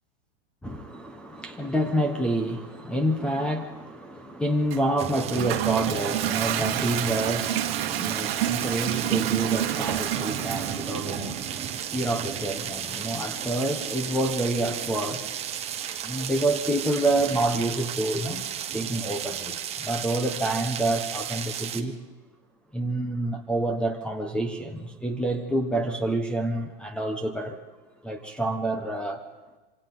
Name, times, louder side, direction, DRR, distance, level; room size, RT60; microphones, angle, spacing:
voice 1, 0.6-15.3 16.0-18.4 18.7-21.9 22.7-27.6 28.0-29.2, right 1 dB, 5° left, 1.3 m, -28 dB
Toilet flush, 4.7-17.5, right 12 dB, 60° right, 1.8 m, -31 dB
sound 1, 5.0-21.8, right 9 dB, 20° right, 1.2 m, -34 dB
27.0 x 27.0 x 3.9 m
hypercardioid pair, 150°, 35 cm